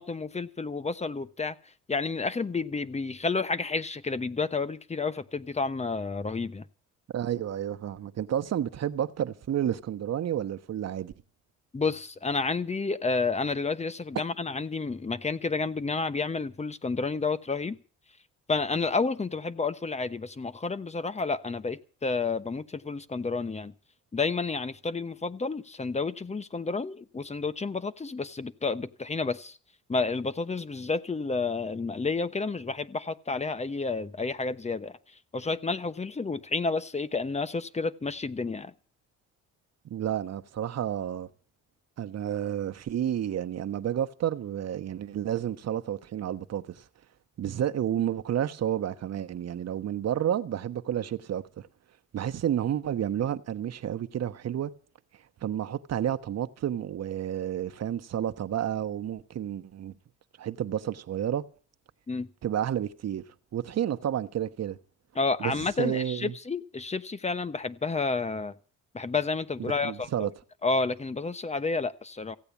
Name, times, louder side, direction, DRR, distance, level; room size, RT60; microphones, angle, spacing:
voice 1, 0.0-1.5 1.9-6.7 11.7-17.8 18.5-23.7 24.1-29.6 29.9-35.0 35.3-38.7 62.1-62.3 65.1-68.5 68.9-70.3 70.6-72.4, left 4 dB, 20° left, 1.0 m, -30 dB
voice 2, 7.1-11.1 39.8-41.3 42.0-46.8 47.4-51.4 52.1-54.7 55.4-59.9 60.4-61.4 62.4-63.2 63.5-64.8 65.4-66.3 69.6-70.3, right 10 dB, 55° right, 1.1 m, -30 dB
15.5 x 8.7 x 8.3 m
cardioid pair, 90°, 30 cm